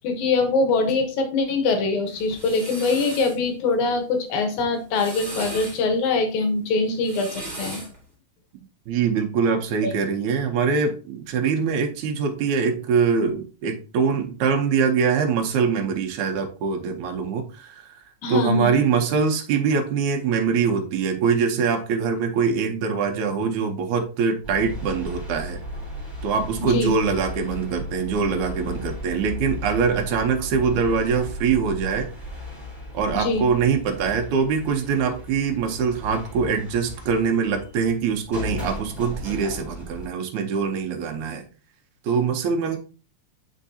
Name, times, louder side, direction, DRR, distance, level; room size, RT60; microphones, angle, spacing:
voice 1, 0.0-7.8 9.8-9.9 18.2-18.8 26.6-27.0 33.1-33.5, left 3 dB, 85° left, 5 dB, 2.5 m, -23 dB
sound 1, 2.1-3.4 4.7-5.8 6.9-8.0, right 1 dB, 15° right, 1.9 m, -36 dB
voice 2, 8.9-18.0 18.3-25.6 26.2-32.1 32.9-41.5 42.0-42.8, right 6 dB, 85° right, 3 dB, 2.3 m, -23 dB
sound 2, 24.4-40.1, left 1 dB, 10° left, 2.2 m, -36 dB
8.2 x 4.6 x 2.7 m, 0.35 s
omnidirectional pair, 3.3 m